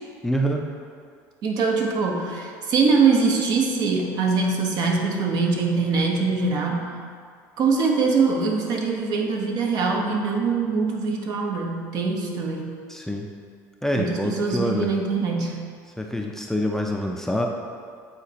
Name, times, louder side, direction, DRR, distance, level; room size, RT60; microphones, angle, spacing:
voice 1, 0.2-0.6 12.9-13.3 13.8-14.9 16.0-17.5, equal, 5° left, 1 dB, 0.5 m, -26 dB
voice 2, 1.4-7.0 7.6-12.7 14.0-15.6, right 4 dB, 55° right, 1 dB, 0.9 m, -23 dB
8.2 x 4.0 x 2.9 m, 2.1 s
supercardioid pair, 100°, 8 cm